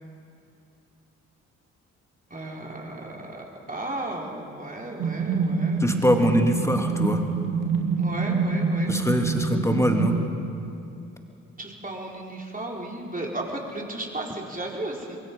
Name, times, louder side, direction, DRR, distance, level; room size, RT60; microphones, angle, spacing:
voice 1, 2.3-5.9 8.0-9.0 11.6-15.2, right 1 dB, 20° right, -1 dB, 4.2 m, -34 dB
sound 1, 5.0-10.3, right 4 dB, 60° right, 2.5 m, -26 dB
voice 2, 5.8-7.2 8.9-10.2, equal, 5° left, 4 dB, 2.6 m, -23 dB
22.5 x 22.5 x 5.4 m, 2.7 s
hypercardioid pair, 40°, 37 cm